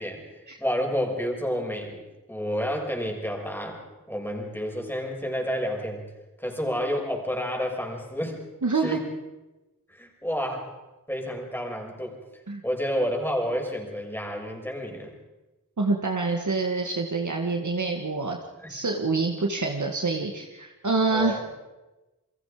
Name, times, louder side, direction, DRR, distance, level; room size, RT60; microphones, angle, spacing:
voice 1, 0.0-2.0 2.3-3.8 4.1-6.0 6.4-8.4 8.7-9.1 9.9-10.7 11.1-12.2 12.6-15.1 18.6-18.7 21.1-21.5, equal, 5° left, 1 dB, 6.1 m, -30 dB
voice 2, 8.6-9.0 12.5-12.6 15.8-18.4 18.7-21.4, right 3 dB, 60° right, 2 dB, 2.1 m, -26 dB
29.0 x 22.5 x 5.1 m, 1.1 s
wide cardioid pair, 70°, 34 cm